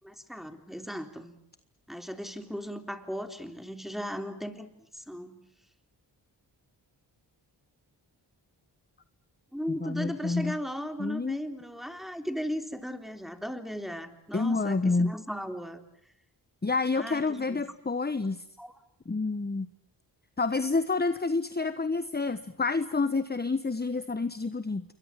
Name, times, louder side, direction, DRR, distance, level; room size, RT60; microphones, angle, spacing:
voice 1, 0.0-1.3 1.9-5.4 9.5-15.8 16.9-17.6 18.6-18.7, equal, ahead, 6 dB, 3.6 m, -37 dB
voice 2, 9.8-10.5 11.0-11.4 14.3-15.1 16.6-18.4 19.1-19.7 20.4-24.8, left 3 dB, 20° left, 13 dB, 1.2 m, -28 dB
27.5 x 23.0 x 7.5 m, 0.74 s
cardioid pair, 50°, 45 cm